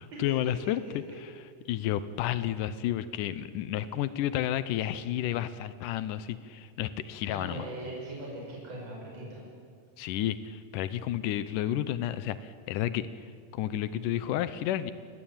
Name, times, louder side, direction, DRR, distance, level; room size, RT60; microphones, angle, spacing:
voice 1, 0.0-1.3 1.7-7.7 10.0-13.2 13.5-14.9, left 12 dB, 90° left, 14 dB, 2.4 m, -31 dB
voice 2, 7.3-9.4, right 1 dB, 55° right, -3 dB, 6.6 m, -40 dB
29.0 x 21.0 x 8.9 m, 2.2 s
omnidirectional pair, 3.6 m